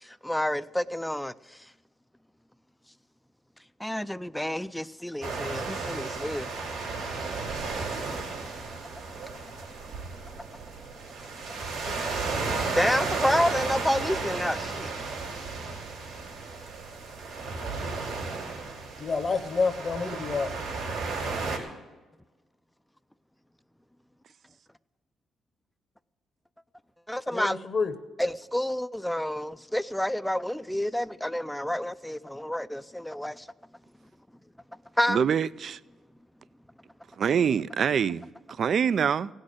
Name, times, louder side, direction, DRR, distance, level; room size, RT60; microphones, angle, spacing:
voice 1, 0.0-1.6 3.8-6.5 7.7-7.8 12.7-14.9 27.1-27.6 28.2-33.5 35.0-35.2, left 1 dB, 5° left, 0.4 m, -29 dB
sound 1, 5.2-21.6, right 4 dB, 85° right, 3.9 m, -34 dB
voice 2, 19.0-20.5 27.3-27.9, left 4 dB, 40° left, 0.9 m, -28 dB
voice 3, 35.1-35.8 37.2-38.2 38.6-39.3, right 7 dB, 55° right, 0.4 m, -25 dB
16.5 x 6.5 x 9.9 m
cardioid pair, 90°, 0 cm